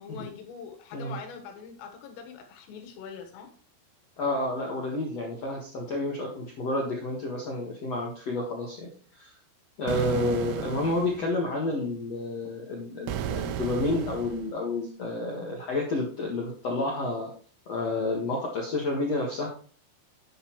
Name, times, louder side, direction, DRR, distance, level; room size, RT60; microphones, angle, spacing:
voice 1, 0.0-3.5 9.9-10.2, left 6 dB, 90° left, 4 dB, 4.1 m, -43 dB
voice 2, 4.2-9.3 9.8-17.3 17.7-19.5, left 2 dB, 60° left, -2 dB, 1.7 m, -30 dB
sound 1, 9.9-11.3 13.1-14.5, right 10 dB, 85° right, 3.3 m, -34 dB
10.5 x 9.6 x 3.1 m, 0.43 s
omnidirectional pair, 5.7 m